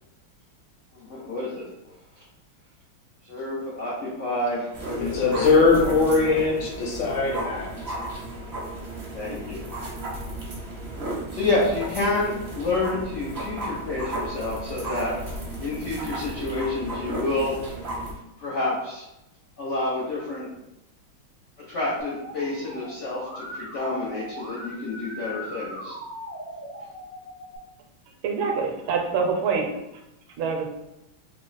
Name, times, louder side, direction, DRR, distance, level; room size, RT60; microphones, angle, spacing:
voice 1, 0.9-1.7 2.2-2.3 3.2-5.8 6.2-6.3 9.1-9.7 11.3-15.3 15.6-17.5 18.4-19.0 19.6-20.5 21.7-26.0, left 2 dB, 85° left, -7 dB, 0.6 m, -29 dB
sound 1, 4.7-18.1, right 1 dB, 55° right, 0.7 m, -34 dB
voice 2, 5.0-8.0, left 4 dB, 65° left, -3 dB, 1.5 m, -21 dB
Musical instrument, 22.0-27.6, equal, 10° right, 0.5 m, -39 dB
voice 3, 28.2-29.7 30.4-30.7, right 5 dB, 75° right, 2 dB, 1.3 m, -25 dB
3.5 x 2.0 x 3.9 m, 0.88 s
omnidirectional pair, 2.3 m